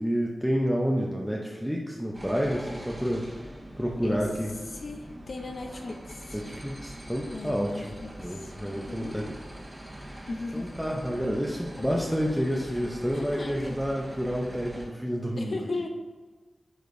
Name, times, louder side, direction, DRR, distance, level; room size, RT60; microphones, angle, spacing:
voice 1, 0.0-3.3 3.8-4.5 6.3-7.9 8.2-9.3 10.5-15.6, equal, ahead, -2 dB, 0.6 m, -29 dB
sound 1, 2.1-14.9, right 1 dB, 25° right, 1.4 m, -43 dB
voice 2, 4.7-6.4 7.3-8.5 8.9-9.2 10.3-10.7 11.8-12.0 13.1-13.8 15.3-15.9, left 3 dB, 55° left, 3 dB, 0.6 m, -37 dB
9.3 x 5.0 x 2.6 m, 1.3 s
wide cardioid pair, 125°, 0 cm